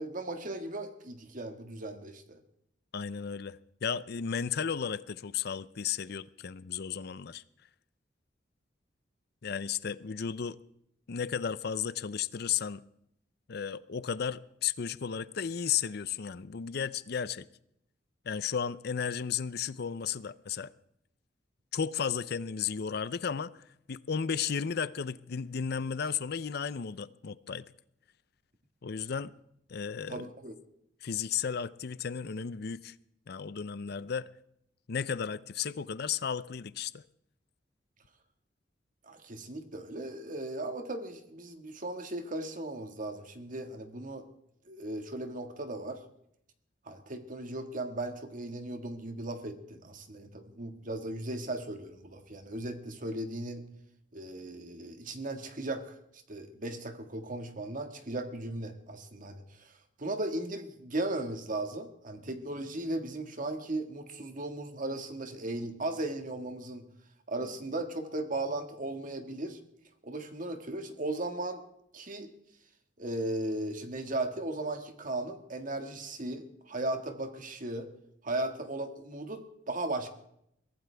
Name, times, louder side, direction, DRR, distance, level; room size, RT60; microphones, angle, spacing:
voice 1, 0.0-2.4 30.1-30.5 39.0-44.3 44.7-46.0 46.9-53.7 54.1-56.0 56.3-59.7 60.0-66.9 67.3-69.6 70.0-71.6 71.9-72.3 73.0-77.9 78.2-80.1, right 2 dB, 45° right, 1.8 m, -37 dB
voice 2, 2.9-7.4 9.4-10.6 11.1-12.8 13.5-17.5 18.3-20.7 21.7-23.5 23.9-27.7 28.8-29.3 29.7-30.2 31.0-32.9 33.3-34.3 34.9-37.0, left 7 dB, 60° left, 0.5 m, -34 dB
23.0 x 15.5 x 3.4 m
head